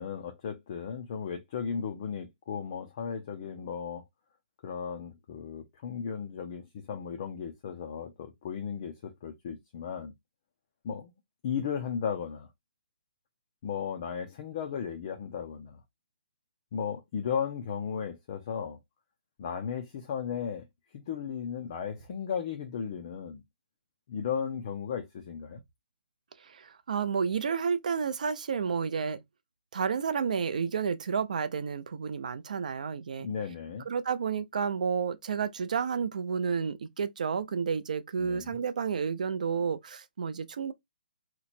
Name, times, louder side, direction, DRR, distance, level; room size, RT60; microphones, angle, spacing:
voice 1, 0.0-4.0 4.6-10.1 10.8-11.1 11.4-12.5 13.6-15.8 16.7-18.8 19.4-20.7 21.1-23.4 24.1-25.6 33.2-33.9 38.2-38.6, left 7 dB, 20° left, 0.4 m, -35 dB
voice 2, 26.4-29.2 29.7-33.3 33.9-40.7, right 6 dB, 50° right, 0.4 m, -31 dB
2.9 x 2.1 x 4.1 m
hypercardioid pair, 175°, 5 cm